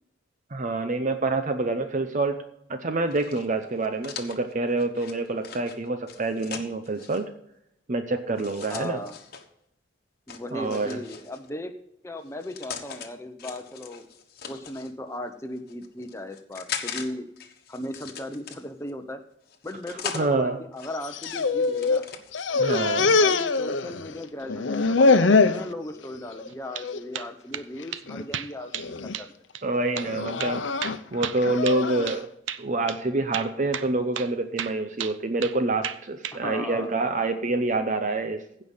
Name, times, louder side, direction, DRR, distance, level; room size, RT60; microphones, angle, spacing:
voice 1, 0.5-2.4 2.7-7.3 7.9-9.0 10.5-11.0 20.1-20.6 22.5-23.2 29.6-30.6 31.1-32.3 32.6-38.4, right 2 dB, 40° right, 7 dB, 0.7 m, -27 dB
sound 1, 3.1-7.2 8.4-9.4 10.3-11.5 12.2-13.1 13.4-14.9 15.6-17.1 17.4-18.9 19.5-20.3 20.7-22.4, left 7 dB, 55° left, 1.3 m, -40 dB
voice 2, 8.7-9.2 10.3-11.7 12.0-14.1 14.5-17.3 17.7-19.2 19.6-22.1 23.1-29.3 36.3-36.9, left 1 dB, 15° left, 6 dB, 0.9 m, -37 dB
sound 2, 21.0-22.0 22.3-24.2 24.5-25.6 26.1-26.5 26.8-27.0 27.8-28.2 28.7-29.1 30.0-32.2, left 4 dB, 80° left, 0.7 m, -23 dB
sound 3, 26.5-26.9 27.1-27.7 27.9-28.0 28.3-28.9 29.1-29.3 29.5-29.6 30.0-30.1 30.4-32.2 32.5-32.6 32.9-33.0 33.3-33.9 34.1-34.3 34.6-35.6 35.8-36.4, right 9 dB, 90° right, 0.6 m, -33 dB
16.0 x 5.4 x 5.5 m, 0.76 s
head